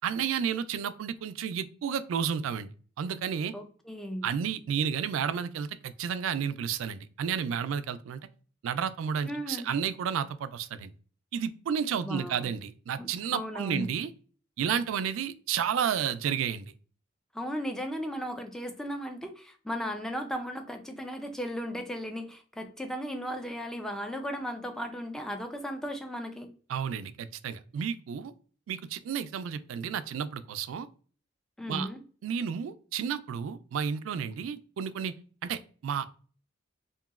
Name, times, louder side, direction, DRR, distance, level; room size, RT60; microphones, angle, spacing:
voice 1, 0.0-2.7 3.0-3.5 4.2-8.2 8.6-10.9 11.3-14.1 14.6-16.7 26.7-28.3 28.7-30.9 31.7-31.9 32.2-35.2 35.4-36.1, right 7 dB, 85° right, 13 dB, 0.3 m, -31 dB
voice 2, 3.5-4.3 9.3-9.7 12.0-12.5 13.0-13.9 17.3-26.5 31.6-32.0, equal, 5° left, 4 dB, 0.4 m, -36 dB
2.9 x 2.6 x 2.3 m, 0.42 s
head